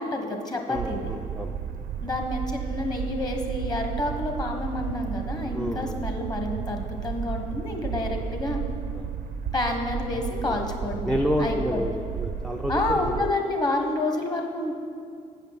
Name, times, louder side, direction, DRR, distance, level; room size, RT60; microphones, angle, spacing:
voice 1, 0.0-1.1 2.0-8.6 9.5-11.9 12.7-14.7, left 2 dB, 25° left, 3 dB, 1.4 m, -29 dB
voice 2, 0.7-1.5 5.5-6.0 8.9-9.1 11.0-13.3, equal, 5° left, 1 dB, 0.5 m, -29 dB
sound 1, 0.7-13.3, right 7 dB, 75° right, 0.6 m, -33 dB
8.0 x 5.6 x 7.4 m, 2.3 s
cardioid pair, 90°, 15 cm